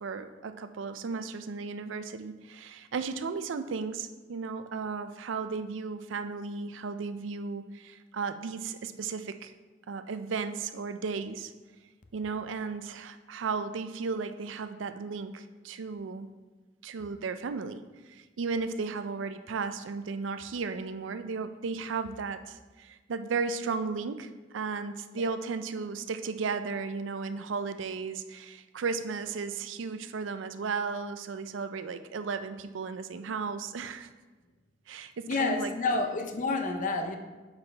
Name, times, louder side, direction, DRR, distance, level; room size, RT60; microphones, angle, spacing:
voice 1, 0.0-9.5 9.9-11.5 12.1-16.3 16.8-17.8 18.1-34.1 34.9-36.0, right 4 dB, 85° right, 10 dB, 0.4 m, -35 dB
voice 2, 35.3-37.2, left 3 dB, 45° left, 5 dB, 0.6 m, -29 dB
8.2 x 5.6 x 3.3 m, 1.3 s
head